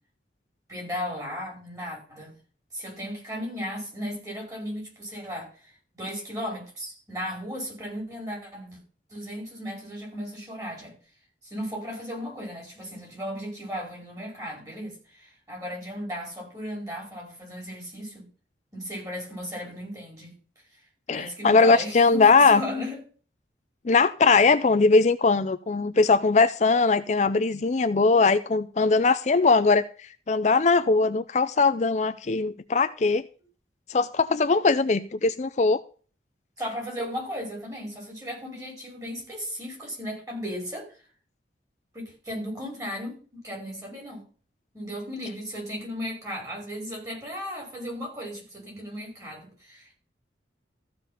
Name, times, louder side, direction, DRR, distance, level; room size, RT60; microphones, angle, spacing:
voice 1, 0.7-2.3 2.7-8.8 9.1-11.0 11.4-18.3 18.7-20.4 21.1-23.0 36.6-40.9 41.9-44.3 44.7-49.9, equal, 20° right, 5.3 m, -36 dB
voice 2, 21.1-22.6 23.9-29.8 30.3-33.2 33.9-35.8, left 4 dB, 40° left, 0.4 m, -20 dB
14.0 x 5.2 x 5.6 m
head